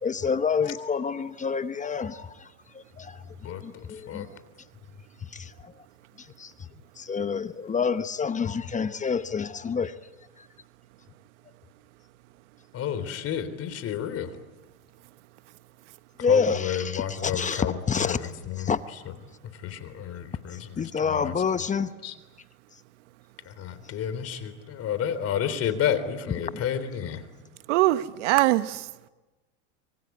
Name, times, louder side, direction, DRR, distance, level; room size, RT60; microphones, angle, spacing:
voice 1, 0.0-2.5 2.7-4.3 5.3-5.5 6.4-6.5 7.0-9.9 16.2-18.2 18.6-18.8 20.8-21.9 26.5-26.6, left 5 dB, 20° left, 1.0 m, -28 dB
voice 2, 3.4-4.3 12.7-14.3 16.3-18.7 19.6-20.7 21.0-21.3 22.0-22.1 23.5-27.2, left 9 dB, 40° left, 3.6 m, -31 dB
voice 3, 27.7-28.9, right 16 dB, 80° right, 1.3 m, -22 dB
25.0 x 24.0 x 9.5 m
supercardioid pair, 110°, 35 cm